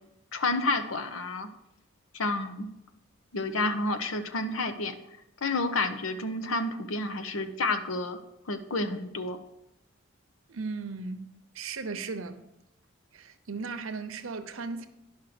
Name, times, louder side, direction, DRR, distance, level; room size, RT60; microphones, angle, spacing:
voice 1, 0.3-1.5 2.1-2.7 3.3-4.9 5.4-8.2 8.5-9.4, left 2 dB, 85° left, 0.9 m, -30 dB
voice 2, 10.5-11.3 11.5-12.4 13.1-14.9, right 4 dB, 90° right, 0.8 m, -36 dB
10.5 x 5.6 x 5.0 m
head